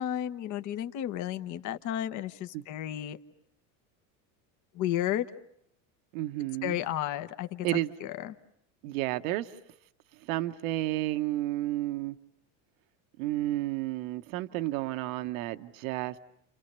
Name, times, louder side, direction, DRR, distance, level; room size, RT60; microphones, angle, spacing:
voice 1, 0.0-3.2 4.7-5.3 6.6-7.7 8.0-8.3, left 11 dB, 50° left, 1.1 m, -32 dB
voice 2, 6.1-6.8 7.6-7.9 8.8-9.6 10.2-12.2 13.2-16.2, right 16 dB, 85° right, 1.0 m, -31 dB
29.5 x 29.0 x 6.7 m
supercardioid pair, 135°, 39 cm